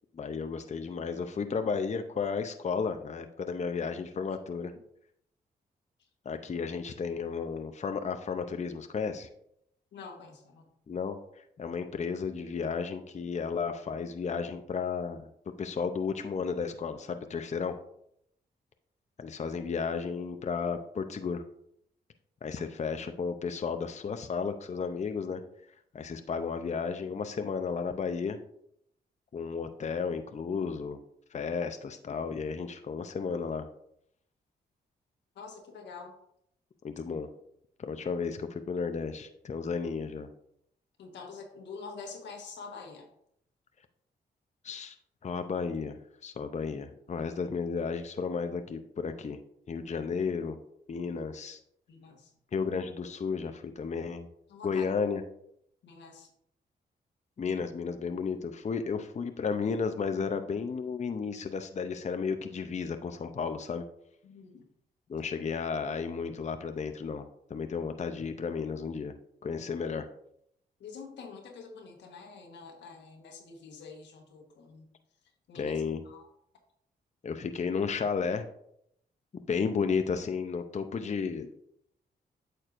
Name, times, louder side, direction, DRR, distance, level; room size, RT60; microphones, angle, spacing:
voice 1, 0.1-4.7 6.3-9.3 10.9-15.3 15.6-17.7 19.2-21.4 22.4-25.4 25.9-28.4 29.3-31.0 31.3-33.7 36.8-37.3 37.8-40.3 44.6-44.9 45.2-46.0 46.2-49.4 49.7-50.6 50.9-51.6 52.5-54.3 54.6-55.2 57.4-63.8 65.1-69.1 69.4-70.0 75.5-76.0 77.2-78.5 79.5-81.5, left 5 dB, 40° left, 7 dB, 0.6 m, -33 dB
voice 2, 9.9-10.7 35.3-36.1 41.0-43.1 51.9-52.3 54.5-54.8 55.8-56.3 64.2-64.7 70.8-74.9 75.5-76.3, left 4 dB, 90° left, 3 dB, 1.3 m, -46 dB
8.8 x 6.5 x 2.5 m, 0.73 s
cardioid pair, 60°, 18 cm